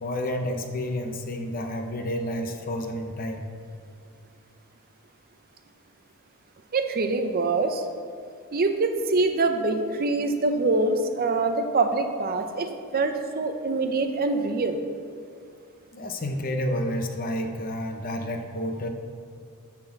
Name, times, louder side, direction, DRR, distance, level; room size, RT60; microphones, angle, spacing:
voice 1, 0.0-3.5 15.9-18.9, left 1 dB, 40° left, 5 dB, 0.7 m, -30 dB
voice 2, 6.7-7.8 8.5-14.8, right 3 dB, 45° right, 7 dB, 0.6 m, -25 dB
9.7 x 4.2 x 7.1 m, 2.3 s
head